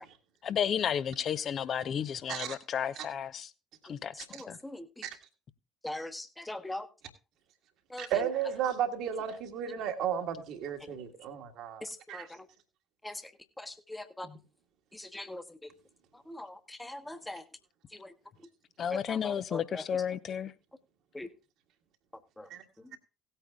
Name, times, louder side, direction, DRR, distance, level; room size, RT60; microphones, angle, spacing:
voice 1, 0.4-3.5 3.9-4.1 4.5-4.6 18.8-20.5, left 8 dB, 45° left, 0.7 m, -32 dB
voice 2, 4.3-4.8 5.8-6.9 7.9-8.1 11.8-12.5 13.0-13.2 13.6-14.3 14.9-15.4 16.3-17.4 17.9-18.1 18.9-19.8 21.1-21.3 22.4-22.5, left 1 dB, 10° left, 1.2 m, -41 dB
voice 3, 8.0-12.3 14.2-14.4 22.5-22.6 22.9-23.0, right 8 dB, 55° right, 1.6 m, -34 dB
18.0 x 9.0 x 2.3 m
figure-of-eight pair, 55°, 0 cm